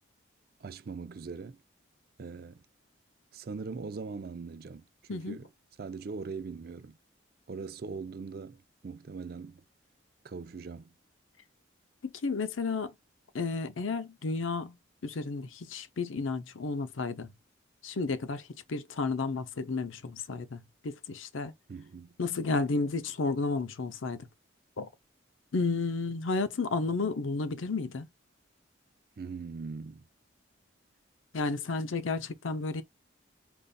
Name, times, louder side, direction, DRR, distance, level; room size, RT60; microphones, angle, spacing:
voice 1, 0.6-1.6 2.2-2.6 3.3-5.5 5.8-7.0 7.5-9.6 10.2-10.9 21.7-22.1 29.2-30.1, right 4 dB, 50° right, 0.4 m, -41 dB
voice 2, 12.0-12.9 13.3-14.8 15.0-17.3 17.8-21.5 22.2-24.3 24.8-24.9 25.5-28.1 31.3-32.8, left 3 dB, 85° left, 0.6 m, -32 dB
5.2 x 2.6 x 2.2 m
head